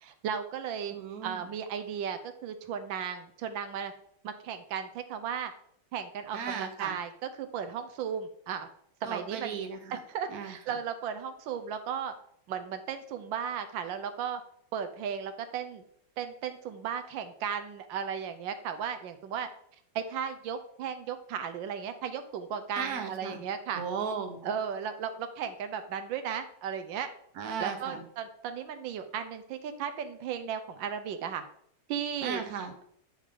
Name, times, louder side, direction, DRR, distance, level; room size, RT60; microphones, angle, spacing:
voice 1, 0.0-1.0 1.2-3.9 4.2-5.5 5.9-8.7 9.0-9.6 9.9-12.1 12.5-14.4 14.7-15.8 16.2-19.5 19.9-23.8 24.4-27.1 27.6-31.4 31.9-32.4, right 7 dB, 85° right, 8 dB, 1.4 m, -35 dB
voice 2, 0.9-1.4 6.3-7.0 9.0-10.0 10.3-10.5 22.8-23.4 23.7-24.4 27.4-28.0 32.2-32.7, right 6 dB, 55° right, 5 dB, 1.4 m, -36 dB
9.5 x 4.9 x 3.7 m, 0.67 s
omnidirectional pair, 2.0 m